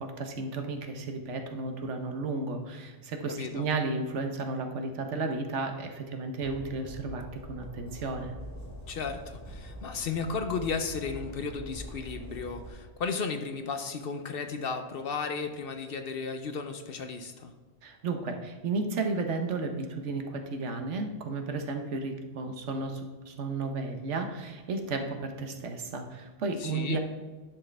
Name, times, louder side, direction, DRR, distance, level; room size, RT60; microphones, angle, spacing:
voice 1, 0.0-8.3 17.8-23.0 23.3-27.0, right 3 dB, 75° right, 5 dB, 1.2 m, -33 dB
voice 2, 3.3-3.7 8.9-17.5 26.6-27.0, left 5 dB, 60° left, 7 dB, 0.8 m, -34 dB
Train, 6.4-12.7, equal, 15° right, 2.7 m, -44 dB
10.5 x 6.2 x 3.3 m, 1.3 s
omnidirectional pair, 1.2 m